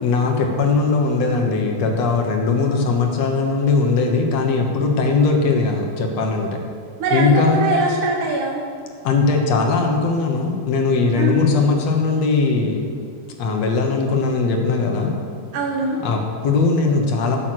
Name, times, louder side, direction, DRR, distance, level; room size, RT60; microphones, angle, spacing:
voice 1, 0.0-6.5 7.1-7.7 9.0-12.9 13.4-15.2 16.0-17.4, left 4 dB, 65° left, 2 dB, 2.2 m, -19 dB
voice 2, 7.0-8.6 11.2-11.4 15.5-16.0, right 2 dB, 85° right, -1 dB, 2.7 m, -21 dB
11.5 x 8.0 x 6.3 m, 2.1 s
omnidirectional pair, 3.5 m